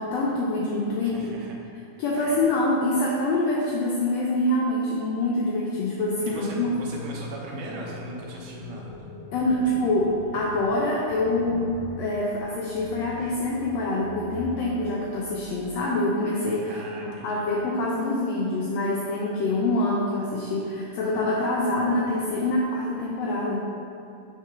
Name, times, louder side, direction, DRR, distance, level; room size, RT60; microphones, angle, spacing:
voice 1, 0.0-1.3 2.0-6.7 9.3-16.8 17.2-23.7, left 2 dB, 85° left, -4 dB, 1.4 m, -25 dB
voice 2, 1.0-1.6 2.2-2.4 6.3-8.9 16.7-17.5, right 1 dB, 75° right, -2 dB, 2.3 m, -39 dB
sound 1, 6.0-15.9, equal, 70° left, 1.9 m, -42 dB
5.5 x 3.7 x 4.9 m, 2.8 s
omnidirectional pair, 3.6 m